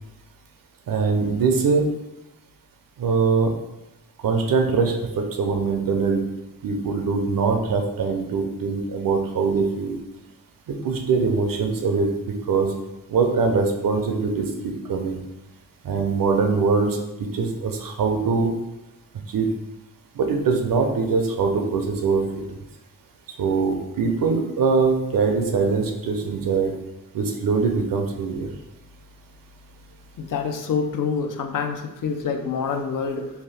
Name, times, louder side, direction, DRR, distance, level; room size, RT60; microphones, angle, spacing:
voice 1, 0.9-1.9 3.0-3.5 4.2-6.2 6.6-10.0 10.8-12.7 13.1-15.2 15.8-18.5 19.3-19.5 20.2-22.4 23.4-26.7 27.1-28.5, right 4 dB, 70° right, 3 dB, 0.6 m, -22 dB
voice 2, 30.2-33.3, left 5 dB, 65° left, 5 dB, 0.5 m, -26 dB
2.8 x 2.2 x 3.3 m, 0.97 s
cardioid pair, 50°, 35 cm